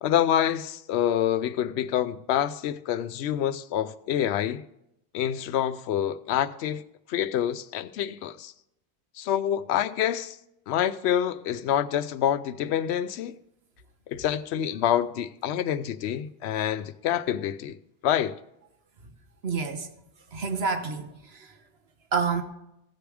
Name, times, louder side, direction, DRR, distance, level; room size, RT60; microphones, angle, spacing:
voice 1, 0.0-4.6 5.1-6.8 7.1-8.5 9.2-10.4 10.7-13.3 14.1-17.8 18.0-18.4, left 10 dB, 85° left, 0.8 m, -27 dB
voice 2, 19.4-19.9 20.3-21.5 22.1-22.4, right 5 dB, 70° right, 1.3 m, -28 dB
15.5 x 6.9 x 4.8 m
omnidirectional pair, 1.1 m